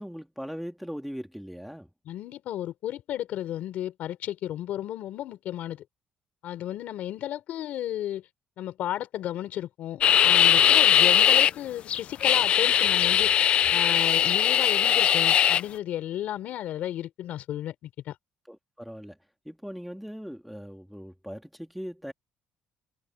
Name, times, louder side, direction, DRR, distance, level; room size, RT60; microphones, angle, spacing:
voice 1, 0.0-1.9 10.6-10.8 18.5-19.2 19.4-22.1, equal, ahead, 2.7 m, -39 dB
voice 2, 2.1-5.8 6.4-8.3 8.6-13.3 13.7-18.1, left 12 dB, 55° left, 4.5 m, -33 dB
sound 1, 10.0-11.5 11.9-15.6, left 9 dB, 40° left, 0.4 m, -20 dB
cardioid pair, 180°, 3 cm